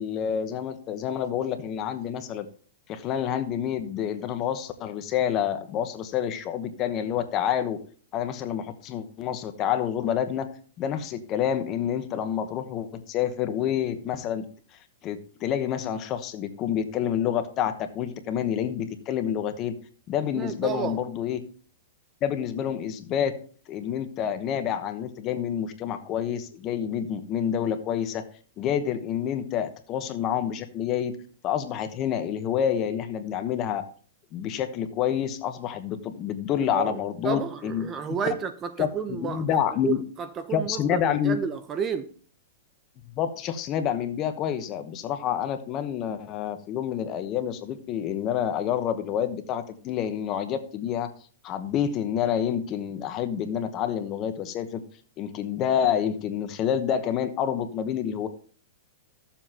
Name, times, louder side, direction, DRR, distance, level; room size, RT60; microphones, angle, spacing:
voice 1, 0.0-2.5 2.9-7.8 8.1-10.5 10.8-14.5 15.0-19.7 20.1-21.4 22.2-23.3 23.7-28.2 28.6-31.2 31.4-33.8 34.3-38.2 38.8-38.9 39.2-40.0 40.5-41.4 43.1-51.1 51.4-54.8 55.2-58.3, left 9 dB, 30° left, 1.0 m, -28 dB
voice 2, 20.3-21.0 36.6-37.0 37.2-39.4 39.8-42.1, right 7 dB, 25° right, 0.8 m, -31 dB
14.0 x 7.2 x 2.9 m
hypercardioid pair, 140°, 0 cm